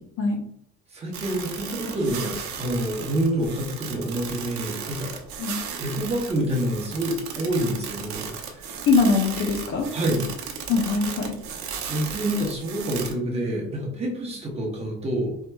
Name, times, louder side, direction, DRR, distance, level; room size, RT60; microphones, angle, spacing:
voice 1, 0.9-5.2 5.8-8.7 9.9-10.2 11.9-15.4, right 1 dB, 20° right, -2 dB, 0.8 m, -27 dB
sound 1, 1.1-13.1, right 6 dB, 65° right, 0.7 m, -35 dB
voice 2, 8.9-9.9 10.7-11.4, left 4 dB, 45° left, 3 dB, 0.6 m, -22 dB
4.4 x 2.9 x 2.2 m, 0.68 s
cardioid pair, 155°, 31 cm